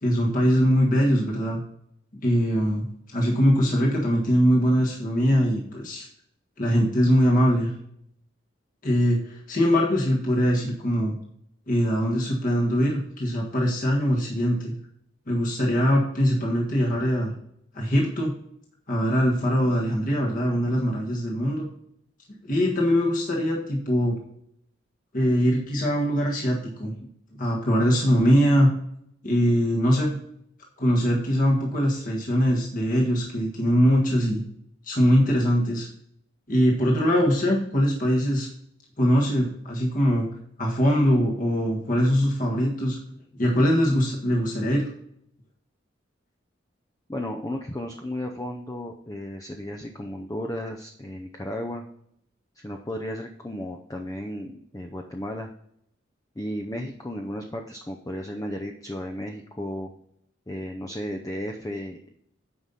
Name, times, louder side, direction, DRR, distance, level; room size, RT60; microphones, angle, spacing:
voice 1, 0.0-1.6 2.2-2.9 3.1-6.1 6.6-7.7 8.8-11.1 11.7-14.7 15.3-17.3 17.7-18.3 18.9-21.7 22.5-24.2 25.1-28.7 29.2-30.2 30.8-34.4 34.9-35.9 36.5-38.5 39.0-40.3 40.6-43.0 43.4-44.9, equal, 45° left, -2 dB, 1.6 m, -22 dB
voice 2, 47.1-51.8 52.6-55.5 56.4-59.9 60.5-62.1, left 1 dB, 20° left, 3 dB, 0.6 m, -34 dB
9.4 x 5.4 x 4.1 m, 0.71 s
head